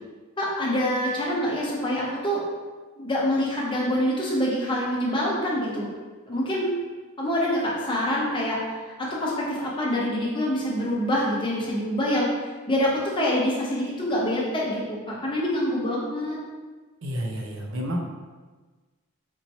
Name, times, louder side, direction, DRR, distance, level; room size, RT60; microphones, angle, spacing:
voice 1, 0.4-2.4 3.0-5.9 6.3-6.7 7.2-8.6 9.0-12.3 12.7-16.4, equal, 25° left, -4 dB, 0.8 m, -25 dB
voice 2, 17.0-18.0, equal, 65° right, 1 dB, 0.6 m, -30 dB
4.5 x 2.9 x 2.7 m, 1.3 s
head